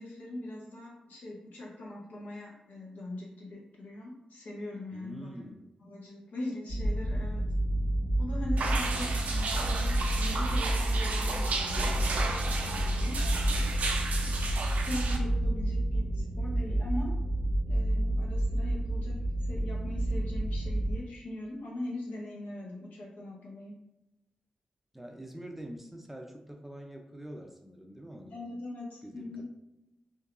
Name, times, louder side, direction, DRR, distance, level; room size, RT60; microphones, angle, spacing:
voice 1, 0.0-5.4 5.8-7.4 8.2-13.2 14.9-17.1 17.7-19.1 19.4-23.7 28.3-29.4, left 1 dB, 80° left, -3 dB, 0.7 m, -41 dB
voice 2, 4.9-5.7 8.9-9.5 14.3-14.6 24.9-28.4 29.0-29.4, right 1 dB, 10° right, 2 dB, 0.4 m, -46 dB
sound 1, 6.7-20.9, right 1 dB, 65° left, 1.2 m, -30 dB
sound 2, 8.6-15.2, right 3 dB, 75° right, 0.4 m, -34 dB
2.7 x 2.3 x 2.4 m, 0.93 s
cardioid pair, 50°, 3 cm